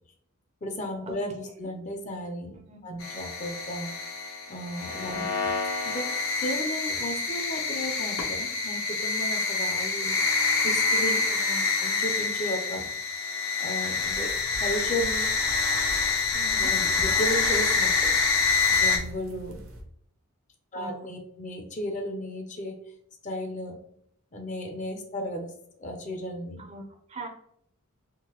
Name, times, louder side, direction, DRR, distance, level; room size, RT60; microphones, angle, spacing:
voice 1, 0.6-3.9 4.5-5.5 5.8-6.1 6.4-10.2 10.6-11.2 11.8-12.9 13.6-15.3 16.6-18.1 18.7-19.6 20.7-22.8 23.2-23.8 24.3-25.5 25.8-26.7, equal, 35° left, 4 dB, 0.6 m, -34 dB
sound 1, 3.0-19.0, left 4 dB, 65° left, 0.8 m, -26 dB
voice 2, 5.1-5.4 11.2-11.6 16.3-16.7 20.7-21.1 26.6-27.3, right 2 dB, 30° right, 4 dB, 0.6 m, -41 dB
sound 2, 14.0-19.8, right 1 dB, 65° right, 0.8 m, -42 dB
3.8 x 2.6 x 2.9 m, 0.69 s
head